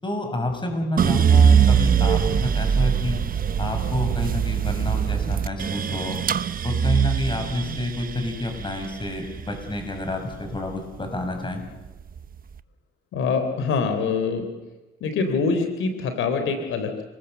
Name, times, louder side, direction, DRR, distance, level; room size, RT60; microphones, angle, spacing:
voice 1, 0.0-3.2 3.6-6.2 6.6-11.6, left 1 dB, 25° left, 4 dB, 6.9 m, -29 dB
sound 1, 1.0-11.2 11.6-12.4, right 7 dB, 45° right, 1.0 m, -22 dB
voice 2, 13.1-14.5 15.0-17.0, left 4 dB, 80° left, 7 dB, 3.5 m, -24 dB
28.5 x 20.0 x 8.1 m, 1.1 s
cardioid pair, 90°, 20 cm